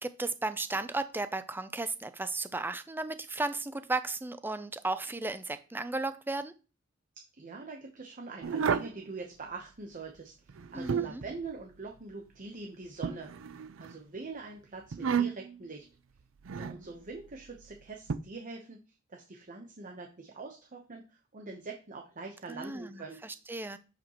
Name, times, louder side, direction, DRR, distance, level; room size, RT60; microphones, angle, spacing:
voice 1, 0.0-6.5 10.7-11.2 22.5-23.8, right 2 dB, 10° right, 12 dB, 0.4 m, -35 dB
voice 2, 7.4-13.3 13.8-15.9 16.5-18.8 19.1-23.2, right 3 dB, 40° right, 1 dB, 0.9 m, -44 dB
sound 1, 8.4-9.0 10.5-11.3 13.0-13.9 14.9-15.6 16.4-16.8 18.1-18.2, right 6 dB, 75° right, 0.5 m, -31 dB
8.5 x 5.1 x 3.0 m, 0.33 s
head